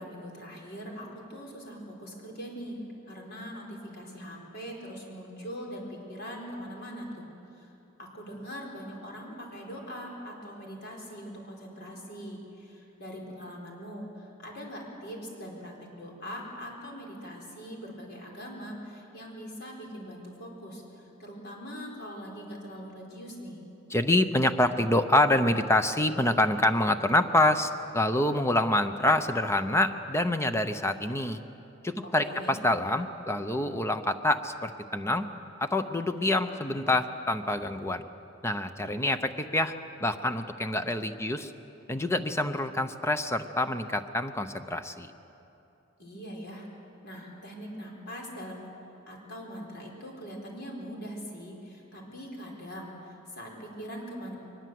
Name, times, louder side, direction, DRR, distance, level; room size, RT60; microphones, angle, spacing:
voice 1, 0.0-2.8 3.1-7.3 7.6-7.7 8.0-23.6 32.2-32.6 46.0-46.7 47.0-48.7 49.1-54.3, equal, 55° left, -1 dB, 4.6 m, -42 dB
voice 2, 23.9-31.4 31.8-35.3 35.6-38.1 38.4-39.7 40.0-41.5 41.9-45.1, left 1 dB, 15° left, 9 dB, 0.7 m, -26 dB
22.5 x 20.5 x 7.8 m, 2.9 s
head